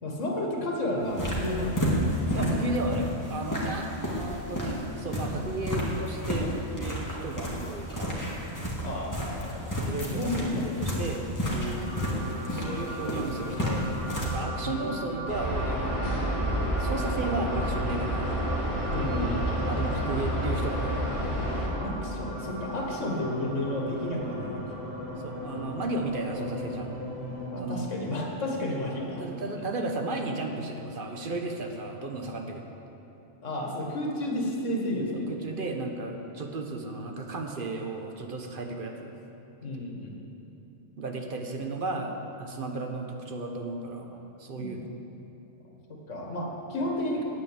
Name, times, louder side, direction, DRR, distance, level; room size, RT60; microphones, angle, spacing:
voice 1, 0.0-2.0 2.3-2.6 8.8-9.8 10.1-11.0 14.6-15.0 18.9-19.4 21.8-24.6 27.5-29.2 29.5-29.6 33.4-35.4 39.6-40.1 44.6-44.8 45.9-47.2, left 1 dB, 85° left, 0 dB, 2.0 m, -32 dB
sound 1, 1.0-14.4, equal, 15° left, 2.1 m, -31 dB
voice 2, 2.3-6.5 6.7-8.2 9.7-11.8 12.4-13.9 14.2-15.9 16.8-18.4 19.7-21.1 25.2-26.9 27.6-27.9 29.2-32.6 35.1-39.1 41.0-44.9, right 2 dB, 45° right, 3 dB, 1.2 m, -34 dB
sound 2, 11.8-27.5, equal, 75° right, 4.1 m, -38 dB
sound 3, 15.3-21.7, equal, 60° left, 2.8 m, -29 dB
9.6 x 9.1 x 8.1 m, 2.9 s
omnidirectional pair, 1.2 m